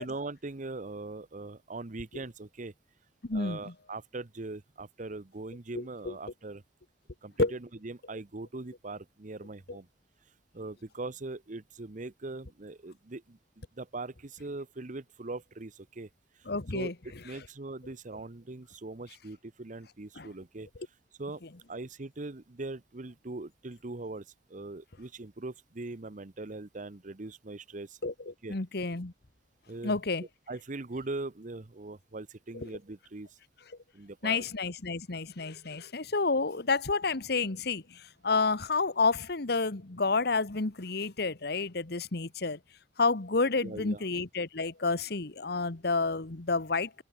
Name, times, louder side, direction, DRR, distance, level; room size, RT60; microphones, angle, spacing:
voice 1, 0.0-2.7 3.3-6.6 7.2-9.9 10.5-16.1 16.7-16.9 17.2-20.7 21.2-21.4 21.7-28.0 28.4-28.5 29.7-29.9 30.5-33.3 33.9-34.4 35.7-35.8 43.6-44.0, right 2 dB, 45° right, 1.0 m, -41 dB
voice 2, 3.2-3.7 5.7-6.1 7.4-7.5 16.5-16.9 20.2-20.3 28.0-29.1 29.8-30.2 32.5-32.7 34.2-42.6 43.0-47.0, left 3 dB, 65° left, 1.4 m, -30 dB
open air
head